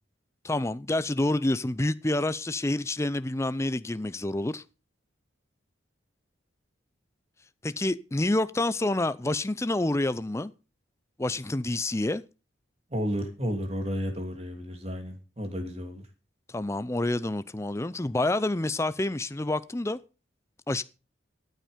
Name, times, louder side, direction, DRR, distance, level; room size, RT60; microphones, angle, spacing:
voice 1, 0.4-4.6 7.6-10.5 11.2-12.2 16.5-20.0 20.7-20.8, left 2 dB, 15° left, 0.5 m, -28 dB
voice 2, 12.9-16.0, equal, 30° right, 2.7 m, -32 dB
13.5 x 9.2 x 5.1 m
head